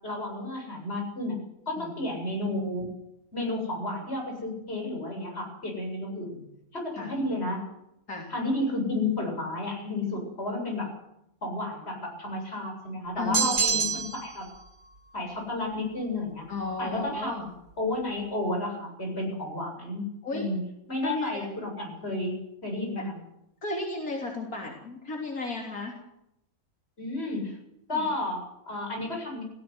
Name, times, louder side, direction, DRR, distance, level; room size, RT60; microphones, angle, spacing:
voice 1, 0.0-1.4 1.7-2.9 3.3-6.4 6.7-7.6 8.3-10.9 11.4-14.5 15.1-16.4 16.8-17.3 17.8-20.1 20.3-20.6 20.9-23.2 27.0-27.6 27.9-29.4, left 2 dB, 45° left, 1 dB, 8.2 m, -32 dB
voice 2, 13.2-13.9 16.5-17.5 20.2-20.5 21.0-21.5 23.0-23.1 23.6-25.9 27.9-28.1, left 3 dB, 85° left, 0 dB, 3.8 m, -34 dB
sound 1, 13.3-14.3, right 5 dB, 85° right, 2.6 m, -26 dB
18.0 x 16.0 x 9.7 m, 0.81 s
omnidirectional pair, 1.5 m